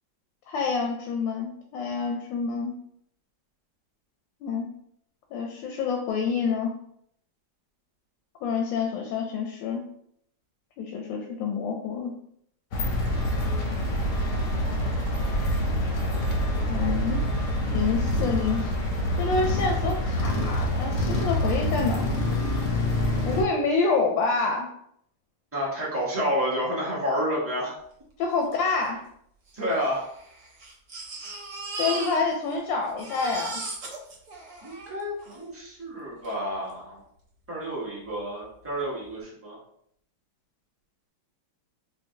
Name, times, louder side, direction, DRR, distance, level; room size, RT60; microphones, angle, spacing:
voice 1, 0.5-2.8 4.4-4.7 5.3-6.8 8.4-9.8 10.8-12.1 16.7-17.2 17.7-18.7 19.2-22.1 23.3-24.7 28.2-29.0 31.8-33.6, left 4 dB, 85° left, 2 dB, 1.3 m, -27 dB
sound 1, 12.7-23.4, left 1 dB, 65° left, 0.8 m, -26 dB
voice 2, 25.5-27.8 29.5-30.1 34.6-37.0 37.5-39.6, equal, 15° right, -7 dB, 0.6 m, -29 dB
Crying sobbing, 28.5-28.6 28.8-28.9 29.7-32.6 32.8-35.4 36.2-36.3 36.7-36.8, right 3 dB, 60° right, 1.2 m, -37 dB
4.4 x 2.0 x 2.7 m, 0.69 s
omnidirectional pair, 2.0 m